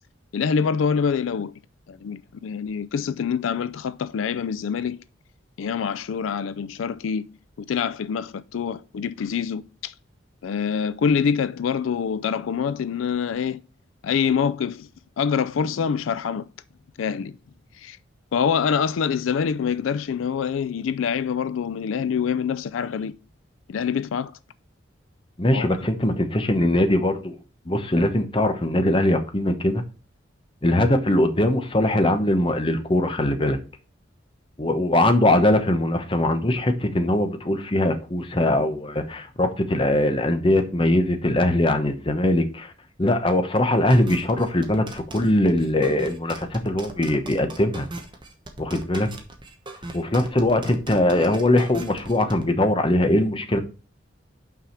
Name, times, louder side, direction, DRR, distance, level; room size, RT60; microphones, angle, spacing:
voice 1, 0.3-1.5 1.9-5.0 5.6-7.2 7.7-9.9 10.4-13.6 14.0-14.9 15.2-16.5 17.0-17.4 17.8-18.0 18.3-23.1 23.7-24.3 25.5-25.9, left 6 dB, 90° left, 0.4 m, -25 dB
voice 2, 25.4-27.4 27.7-29.8 30.6-33.6 34.6-42.7 43.0-47.9 48.6-49.1 49.9-53.6, left 1 dB, 25° left, 0.9 m, -21 dB
sound 1, 43.9-52.4, right 2 dB, 25° right, 1.1 m, -38 dB
5.9 x 4.8 x 5.8 m
head